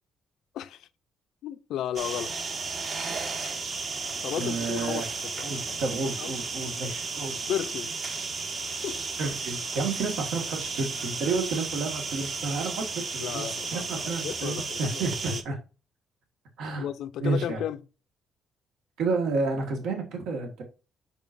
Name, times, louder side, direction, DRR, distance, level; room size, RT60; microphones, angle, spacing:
voice 1, 0.5-0.9 1.4-2.4 4.2-5.8 6.2-6.4 7.5-8.0 8.8-9.0 11.2-11.4 13.2-15.0 15.3-15.4 16.8-17.8, left 10 dB, 70° left, 0.5 m, -34 dB
sound 1, 1.9-15.4, right 4 dB, 40° right, 1.0 m, -34 dB
voice 2, 4.4-5.1 5.4-7.5 9.2-15.6 16.6-16.9 17.2-17.6 19.0-20.6, right 3 dB, 75° right, 1.6 m, -31 dB
7.1 x 5.6 x 2.6 m
cardioid pair, 145°, 0 cm